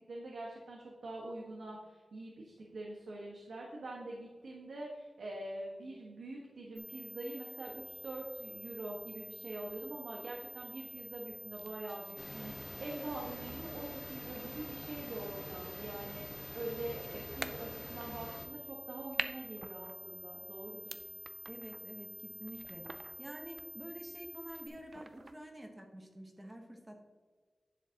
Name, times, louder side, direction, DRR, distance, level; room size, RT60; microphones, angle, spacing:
voice 1, 0.1-21.0, right 1 dB, 85° right, -3 dB, 1.5 m, -44 dB
sound 1, 6.8-24.7, equal, 5° left, 1.4 m, -49 dB
sound 2, 7.6-25.4, right 3 dB, 45° right, 0.5 m, -51 dB
sound 3, 12.2-18.5, left 2 dB, 65° left, 1.3 m, -48 dB
voice 2, 21.5-27.0, equal, 15° right, 2 dB, 1.2 m, -49 dB
11.0 x 7.1 x 2.9 m, 1.5 s
wide cardioid pair, 90°, 0 cm